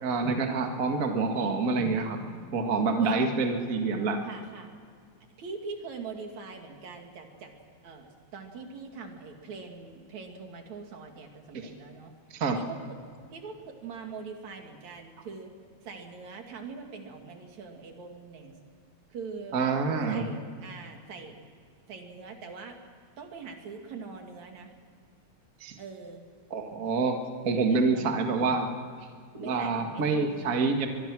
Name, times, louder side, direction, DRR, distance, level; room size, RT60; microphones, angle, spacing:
voice 1, 0.0-2.3 2.5-4.2 11.5-11.7 12.3-12.6 19.5-20.3 25.6-25.8 26.5-28.7 29.3-30.9, right 4 dB, 35° right, 4 dB, 1.9 m, -27 dB
voice 2, 4.2-4.7 5.4-7.5 7.8-12.1 12.5-13.0 13.3-15.5 15.8-18.5 19.1-19.6 20.1-21.4 21.9-22.8 23.2-24.7 25.8-26.3 27.7-28.1 29.4-30.9, right 5 dB, 70° right, 3 dB, 3.6 m, -43 dB
23.5 x 23.0 x 6.1 m, 2.1 s
omnidirectional pair, 3.4 m